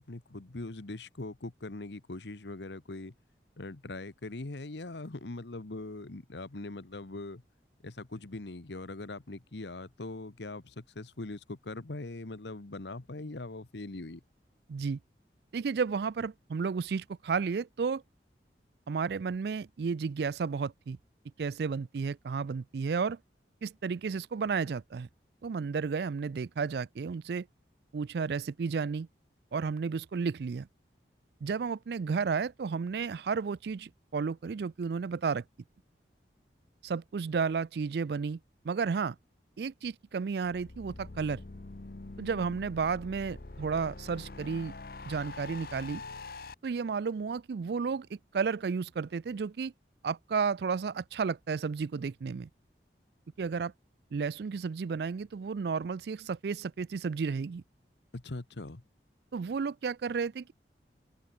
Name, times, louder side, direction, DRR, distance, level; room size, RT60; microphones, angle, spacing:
voice 1, 0.0-3.1 3.6-7.4 7.8-14.2 58.1-58.8, left 2 dB, 75° left, 1.2 m, -41 dB
voice 2, 14.7-15.0 15.5-18.0 18.9-21.0 21.4-23.2 23.6-25.1 25.4-27.5 27.9-29.1 29.5-30.7 31.4-35.4 36.8-38.4 38.6-39.2 39.6-41.4 42.2-44.7 45.1-46.0 46.6-48.1 48.3-49.7 50.0-52.5 53.4-53.7 54.1-57.6 59.3-60.5, right 5 dB, 65° right, 0.4 m, -32 dB
sound 1, 40.4-46.5, left 3 dB, 55° left, 0.9 m, -45 dB
head